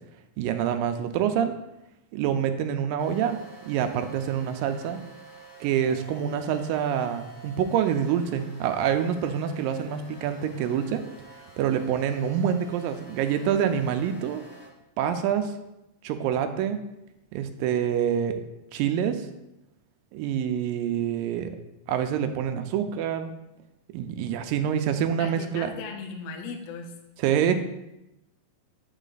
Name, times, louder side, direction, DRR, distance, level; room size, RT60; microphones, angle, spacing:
voice 1, 0.4-1.5 2.1-3.4 3.7-5.0 5.6-11.0 11.6-14.4 15.0-15.5 16.0-16.8 17.3-18.4 18.7-19.3 20.1-21.5 21.9-23.3 23.9-25.7 27.2-27.5, right 9 dB, 85° right, 8 dB, 2.2 m, -26 dB
sound 1, 3.0-14.7, right 2 dB, 60° left, 4.2 m, -48 dB
voice 2, 25.2-26.9, left 5 dB, 80° left, 4 dB, 1.5 m, -37 dB
9.0 x 4.0 x 3.9 m, 0.90 s
omnidirectional pair, 4.0 m